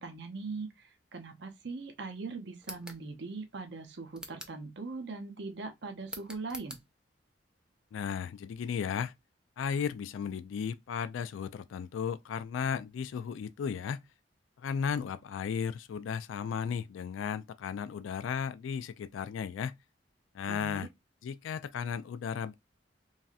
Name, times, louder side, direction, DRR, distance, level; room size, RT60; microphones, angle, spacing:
voice 1, 0.0-6.8 20.4-20.9, right 3 dB, 60° right, 0.7 m, -41 dB
sound 1, 2.6-3.0 4.1-4.6 6.1-6.8, right 1 dB, 5° right, 0.5 m, -45 dB
voice 2, 7.9-9.1 9.6-14.0 14.6-19.7 20.3-20.9 21.2-22.5, left 7 dB, 85° left, 0.3 m, -35 dB
3.1 x 2.7 x 2.3 m
head